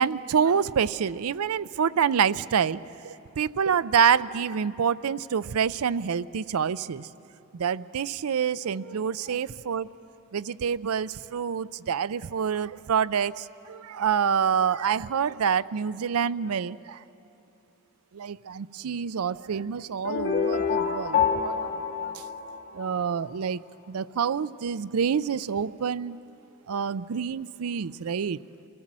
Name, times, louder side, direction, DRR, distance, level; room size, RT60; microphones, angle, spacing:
voice 1, 0.0-7.1 7.5-9.9 10.3-17.0 18.1-21.7 22.0-22.2 22.7-23.6 23.9-26.2 26.7-28.4, right 7 dB, 70° right, 18 dB, 0.5 m, -27 dB
sound 1, 20.0-23.1, left 6 dB, 50° left, 1.4 m, -27 dB
28.0 x 18.5 x 7.5 m, 3.0 s
head